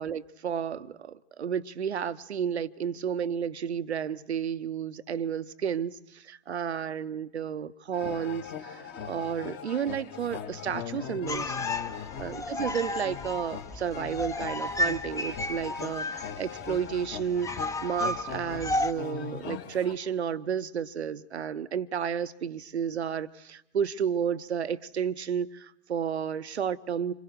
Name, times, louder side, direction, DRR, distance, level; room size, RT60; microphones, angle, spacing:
voice 1, 0.0-11.6 12.2-27.1, right 8 dB, 75° right, 0.9 m, -32 dB
sound 1, 7.9-20.0, left 8 dB, 35° left, 1.9 m, -40 dB
sound 2, 11.3-18.9, left 2 dB, 10° left, 0.8 m, -33 dB
27.0 x 25.5 x 6.5 m
figure-of-eight pair, 95°, 33 cm